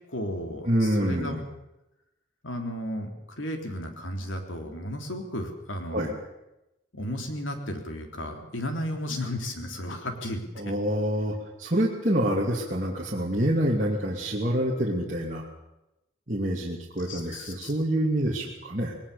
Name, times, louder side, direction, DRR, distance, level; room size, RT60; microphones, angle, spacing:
voice 1, 0.1-1.4 2.4-6.1 6.9-10.7 17.0-17.7, left 1 dB, 80° left, 4 dB, 3.5 m, -34 dB
voice 2, 0.6-1.4 5.9-6.1 10.6-15.4 16.3-19.0, right 1 dB, 40° right, -4 dB, 2.6 m, -27 dB
20.5 x 19.0 x 7.0 m, 0.93 s
head